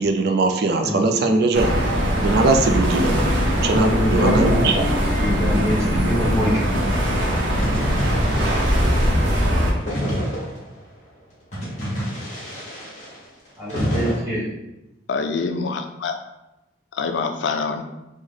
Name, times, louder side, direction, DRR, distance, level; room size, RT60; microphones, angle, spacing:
voice 1, 0.0-1.8 2.2-3.3 3.6-4.9, right 3 dB, 55° right, 5 dB, 0.3 m, -20 dB
sound 1, 1.5-9.7, equal, 90° right, 0.8 m, -21 dB
voice 2, 3.6-6.7 13.6-14.5, left 1 dB, 15° right, -8 dB, 1.2 m, -24 dB
sound 2, 7.6-10.8 11.5-14.2, equal, 35° left, 1.3 m, -28 dB
voice 3, 15.1-16.1 16.9-17.8, left 4 dB, 70° left, 6 dB, 0.3 m, -25 dB
3.3 x 2.1 x 3.7 m, 0.94 s
head